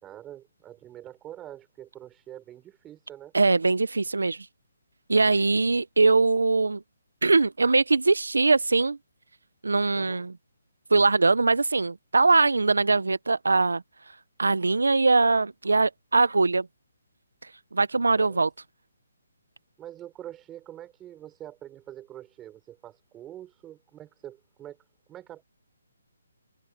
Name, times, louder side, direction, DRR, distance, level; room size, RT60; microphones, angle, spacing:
voice 1, 0.0-3.3 9.9-10.3 18.2-18.4 19.8-24.8 25.1-25.4, right 12 dB, 15° right, 4.9 m, -45 dB
voice 2, 3.3-4.5 5.1-6.8 7.2-9.0 9.6-10.3 10.9-16.7 17.4-18.5, right 3 dB, 85° right, 0.9 m, -22 dB
hypercardioid pair, 150°, 0 cm